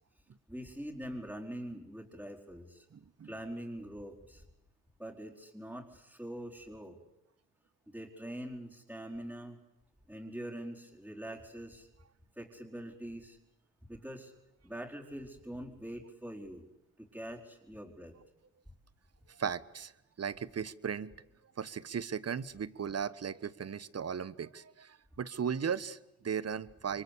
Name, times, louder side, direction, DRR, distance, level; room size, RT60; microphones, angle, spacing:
voice 1, 0.5-2.9 3.2-4.4 5.0-7.0 7.9-9.6 10.1-11.9 12.4-13.4 13.9-14.3 14.6-16.7 17.0-18.2, equal, 5° right, -5 dB, 4.8 m, -44 dB
voice 2, 2.9-3.3 19.3-19.9 20.2-21.1 21.6-27.0, right 7 dB, 50° right, 18 dB, 1.3 m, -37 dB
28.0 x 23.5 x 8.5 m, 0.89 s
supercardioid pair, 55°, 33 cm